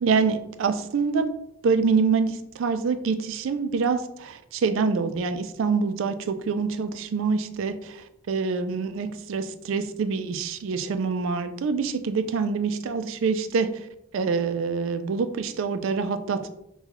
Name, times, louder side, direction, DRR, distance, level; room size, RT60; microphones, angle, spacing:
voice 1, 0.0-1.3 1.6-13.9 14.1-16.5, right 5 dB, 65° right, 10 dB, 0.3 m, -26 dB
5.5 x 2.3 x 2.9 m, 0.79 s
head